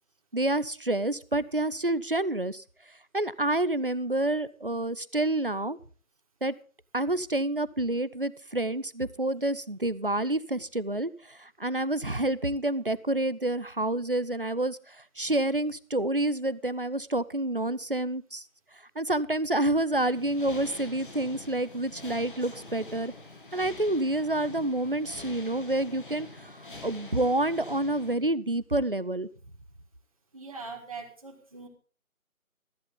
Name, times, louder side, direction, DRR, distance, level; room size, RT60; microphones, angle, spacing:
voice 1, 0.3-2.6 3.1-5.8 6.4-6.5 6.9-18.4 19.0-23.1 23.5-29.3, right 1 dB, 40° right, 17 dB, 0.6 m, -28 dB
sound 1, 19.9-28.2, left 2 dB, 35° left, 2.0 m, -45 dB
voice 2, 30.3-31.7, right 4 dB, 25° right, 2 dB, 2.3 m, -41 dB
14.5 x 14.0 x 3.8 m, 0.39 s
figure-of-eight pair, 170°, 42 cm